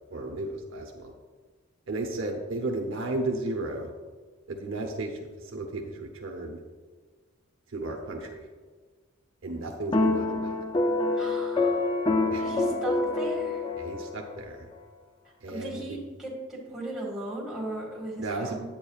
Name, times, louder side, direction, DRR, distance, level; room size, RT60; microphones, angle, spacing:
voice 1, 0.1-1.1 1.9-3.9 4.5-6.6 7.7-8.4 9.4-10.6 12.3-12.4 13.8-14.7 15.4-16.0 18.2-18.6, right 2 dB, 60° right, 2 dB, 0.8 m, -34 dB
sound 1, 9.9-14.4, left 2 dB, 20° left, 0.4 m, -26 dB
voice 2, 11.1-11.8 12.3-13.6 15.5-18.6, right 1 dB, ahead, -5 dB, 1.8 m, -37 dB
8.8 x 8.6 x 2.4 m, 1.4 s
head